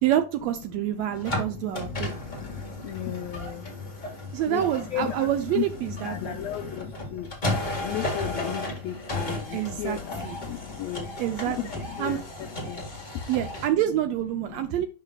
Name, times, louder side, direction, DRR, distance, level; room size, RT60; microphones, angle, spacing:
voice 1, 0.0-2.2 4.3-6.4 9.5-10.0 10.2-10.4 11.2-11.7 12.0-12.2 13.3-14.9, right 12 dB, 85° right, 1.5 m, -27 dB
voice 2, 0.7-3.7 4.5-5.3 5.6-7.3 7.8-11.1 11.5-12.9 14.4-14.9, left 11 dB, 80° left, 1.5 m, -35 dB
sound 1, 1.1-13.7, left 2 dB, 25° left, 1.1 m, -34 dB
10.5 x 5.7 x 2.3 m
omnidirectional pair, 3.6 m